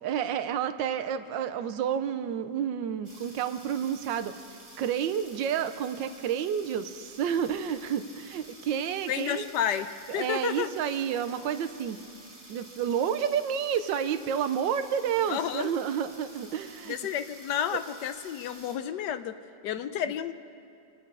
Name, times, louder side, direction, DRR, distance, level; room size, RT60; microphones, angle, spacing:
voice 1, 0.0-4.3 4.8-9.4 10.1-12.0 12.5-17.0 17.7-17.8, right 8 dB, 80° right, 10 dB, 1.3 m, -30 dB
sound 1, 3.0-18.8, right 1 dB, 15° right, 1.8 m, -51 dB
voice 2, 9.1-10.7 15.3-15.7 16.9-19.3 19.6-20.3, left 9 dB, 75° left, 10 dB, 1.1 m, -31 dB
25.5 x 8.6 x 5.4 m, 2.7 s
omnidirectional pair, 2.0 m